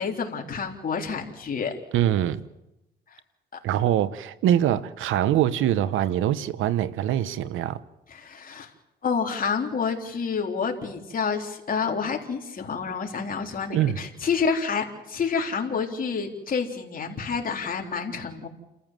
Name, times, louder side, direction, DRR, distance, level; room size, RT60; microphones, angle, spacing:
voice 1, 0.0-1.7 3.5-3.6 8.1-8.7 9.0-18.5, left 5 dB, 45° left, 3.8 m, -28 dB
voice 2, 1.9-2.5 3.6-7.8 13.7-14.0, right 11 dB, 85° right, 1.0 m, -23 dB
29.5 x 14.5 x 7.6 m
cardioid pair, 90°, 20 cm